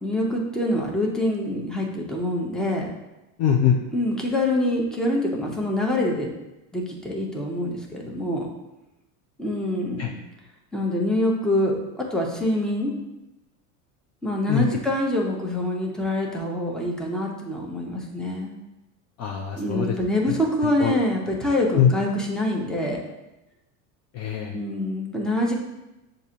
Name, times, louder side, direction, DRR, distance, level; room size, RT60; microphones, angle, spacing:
voice 1, 0.0-2.9 3.9-6.3 6.7-8.5 9.4-10.2 10.7-12.9 14.2-18.5 19.6-23.0 24.5-25.5, left 1 dB, ahead, -1 dB, 0.7 m, -25 dB
voice 2, 3.4-3.8 10.0-10.1 14.5-14.6 19.2-20.0 20.3-20.4 20.6-20.9 21.7-21.9 24.1-24.5, left 9 dB, 35° left, 0 dB, 0.4 m, -22 dB
6.7 x 2.6 x 2.8 m, 0.98 s
supercardioid pair, 100°, 45 cm